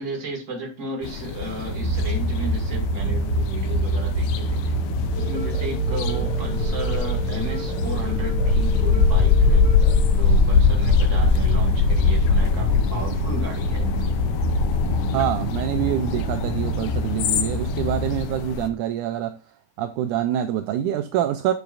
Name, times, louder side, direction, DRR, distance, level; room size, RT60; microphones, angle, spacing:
voice 1, 0.0-4.8 5.1-9.6 10.2-13.9, right 2 dB, 25° right, 2.1 m, -34 dB
sound 1, 1.0-18.7, left 4 dB, 75° left, 1.7 m, -23 dB
sound 2, 1.7-18.2, right 2 dB, 65° right, 2.9 m, -27 dB
sound 3, 5.1-10.1, left 3 dB, 45° right, 0.4 m, -36 dB
voice 2, 15.1-19.3 19.8-21.5, right 11 dB, 80° right, 1.9 m, -25 dB
8.1 x 7.0 x 2.6 m
omnidirectional pair, 3.8 m